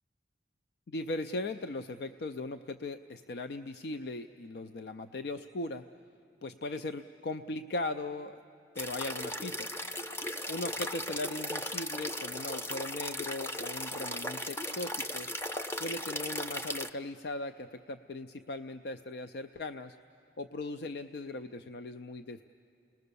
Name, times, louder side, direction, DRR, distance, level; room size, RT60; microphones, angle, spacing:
voice 1, 0.9-5.8 6.4-8.4 8.8-9.8 10.5-15.3 15.7-20.0 20.4-22.4, left 2 dB, 60° left, 10 dB, 0.4 m, -38 dB
sound 1, 8.8-16.9, left 1 dB, 15° left, 0.6 m, -37 dB
29.0 x 20.5 x 6.9 m, 2.9 s
head